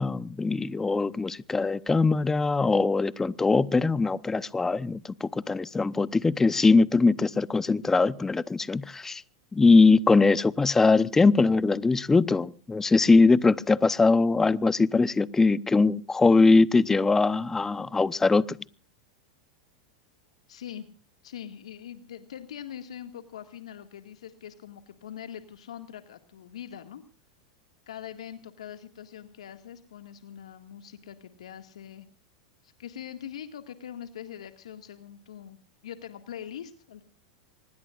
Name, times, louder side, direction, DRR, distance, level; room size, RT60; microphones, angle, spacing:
voice 1, 0.0-9.2 9.5-18.6, left 3 dB, 10° left, 18 dB, 0.8 m, -22 dB
voice 2, 20.5-20.9 21.2-27.0 27.9-32.1 32.6-37.0, left 9 dB, 85° left, 8 dB, 1.9 m, -42 dB
24.5 x 20.5 x 2.5 m, 0.37 s
hypercardioid pair, 115°, 3 cm